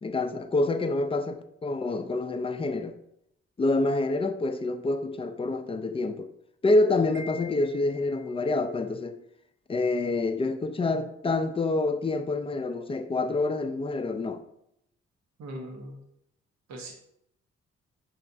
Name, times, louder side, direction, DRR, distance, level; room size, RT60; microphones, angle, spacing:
voice 1, 0.0-2.9 3.6-6.3 6.6-9.2 9.7-14.4, left 2 dB, 20° left, 0.4 m, -27 dB
Wind chime, 7.1-8.5, left 4 dB, 45° right, 0.6 m, -46 dB
voice 2, 15.4-16.0 16.7-16.9, right 1 dB, 70° right, 0.9 m, -39 dB
5.6 x 3.2 x 2.6 m
cardioid pair, 65°, 29 cm